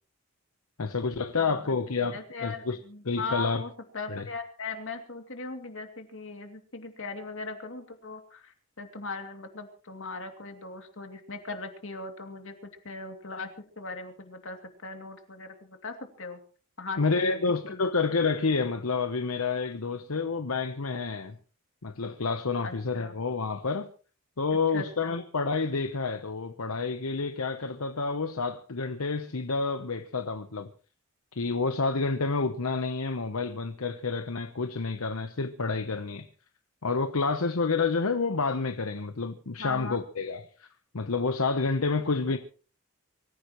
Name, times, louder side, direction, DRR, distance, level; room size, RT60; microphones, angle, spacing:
voice 1, 0.8-2.8 3.0-3.6 4.1-4.3 17.0-21.4 21.8-23.9 24.4-30.7 31.3-36.3 36.8-40.7 40.9-42.4, left 4 dB, 80° left, 0.9 m, -29 dB
voice 2, 1.4-12.5 12.8-13.5 13.8-16.4 16.8-17.4 17.7-17.9 22.6-23.1 24.7-25.2 39.6-40.0, left 3 dB, 60° left, 2.6 m, -39 dB
24.5 x 15.0 x 3.1 m
head